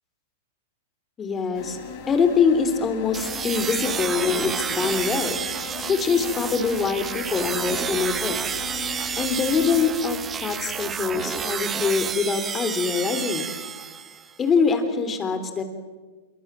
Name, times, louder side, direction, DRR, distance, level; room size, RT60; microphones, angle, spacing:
voice 1, 1.2-1.8 2.1-5.4 5.9-8.4 9.2-13.5 14.4-15.6, left 5 dB, 20° left, 8 dB, 3.7 m, -24 dB
sound 1, 1.5-9.8, left 5 dB, 45° left, 6.2 m, -37 dB
sound 2, 3.1-14.3, right 7 dB, 20° right, 1.5 m, -30 dB
26.5 x 24.0 x 7.7 m, 1.3 s
hypercardioid pair, 135°, 0 cm